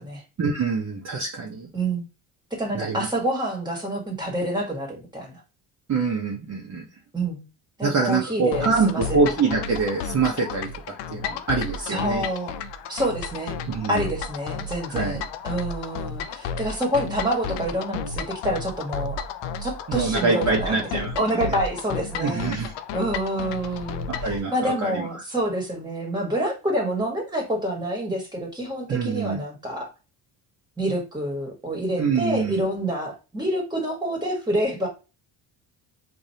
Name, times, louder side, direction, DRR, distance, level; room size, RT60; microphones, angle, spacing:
voice 1, 0.4-1.7 2.7-3.1 5.9-6.8 7.8-12.2 13.7-14.1 14.9-15.2 19.9-21.5 22.2-22.7 24.2-25.2 28.9-29.4 32.0-32.6, right 4 dB, 40° right, -1 dB, 0.9 m, -25 dB
voice 2, 1.7-2.1 2.5-5.4 7.1-7.4 7.8-9.3 11.9-12.5 12.9-13.6 13.9-19.2 19.6-20.8 21.1-22.5 22.9-29.9 30.8-34.9, right 1 dB, 10° right, 1 dB, 1.5 m, -27 dB
sound 1, 8.5-24.4, left 5 dB, 80° left, 0.6 m, -32 dB
4.9 x 2.6 x 2.8 m, 0.30 s
cardioid pair, 105°, 42 cm